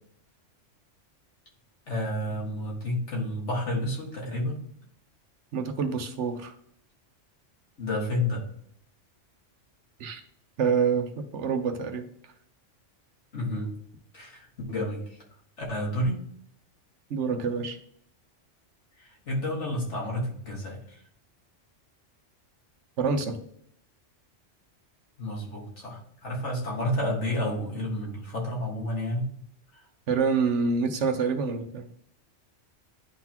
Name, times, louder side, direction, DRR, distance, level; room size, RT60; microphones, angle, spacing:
voice 1, 1.9-4.6 7.8-8.4 13.3-13.7 14.1-15.2 15.6-16.2 19.0-21.0 25.2-29.3 29.7-29.9, left 1 dB, 70° left, -2 dB, 2.2 m, -30 dB
voice 2, 5.5-6.5 10.0-10.2 10.6-12.1 17.1-17.8 23.0-23.4 30.1-31.9, right 5 dB, 70° right, 7 dB, 1.1 m, -27 dB
11.0 x 4.0 x 2.9 m, 0.65 s
omnidirectional pair, 1.3 m